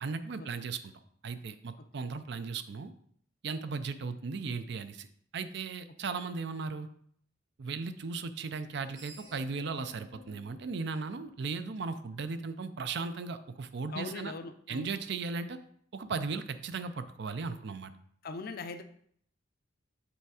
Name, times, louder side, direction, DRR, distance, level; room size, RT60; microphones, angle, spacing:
voice 1, 0.0-0.9 1.2-2.9 3.4-5.1 5.3-6.9 7.6-14.3 14.7-15.6 15.9-17.9, right 4 dB, 60° right, 11 dB, 0.5 m, -36 dB
Screech, 8.6-11.8, equal, 90° right, 2.6 m, -55 dB
voice 2, 13.9-14.9 18.2-18.8, left 4 dB, 50° left, 7 dB, 0.5 m, -40 dB
7.0 x 3.4 x 4.8 m, 0.64 s
head